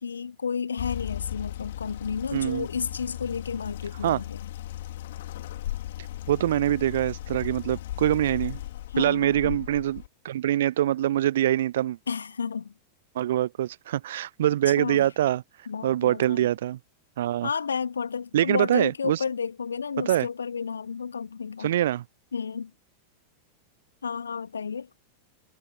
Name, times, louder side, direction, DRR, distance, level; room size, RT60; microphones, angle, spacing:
voice 1, 0.0-4.4 8.9-9.6 12.1-12.7 14.8-15.1 15.7-16.5 17.4-21.7 22.3-22.7 24.0-24.9, left 6 dB, 70° left, 2.4 m, -32 dB
sound 1, 0.8-10.1, left 14 dB, 55° left, 3.9 m, -36 dB
voice 2, 2.3-2.7 4.0-4.2 6.3-8.6 9.0-12.0 13.1-15.4 15.8-16.8 17.2-17.5 18.3-19.2 20.1-20.3 21.6-22.0, right 12 dB, 60° right, 0.7 m, -24 dB
figure-of-eight pair, 90°, 0 cm